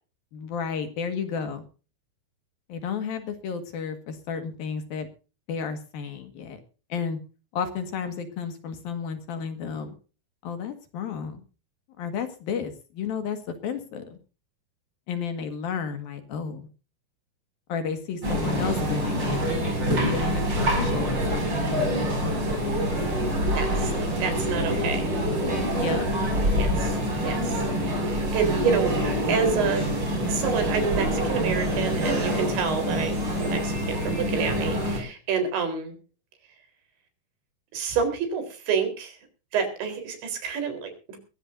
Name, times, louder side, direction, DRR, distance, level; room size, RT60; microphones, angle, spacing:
voice 1, 0.3-1.6 2.7-5.1 5.5-6.6 6.9-7.2 7.5-9.9 10.4-11.4 12.0-13.4 13.6-14.1 15.1-16.7 17.7-19.6 20.0-22.6 25.8-26.1, left 6 dB, 60° left, 8 dB, 3.3 m, -32 dB
sound 1, 18.2-35.0, equal, 25° right, 6.5 m, -26 dB
voice 2, 23.5-25.1 26.6-27.0 27.2-27.6 28.0-28.9 29.3-29.8 30.3-35.9 37.7-39.2 39.5-41.2, right 6 dB, 75° right, 6 dB, 6.3 m, -28 dB
21.5 x 15.5 x 2.6 m, 0.35 s
omnidirectional pair, 5.2 m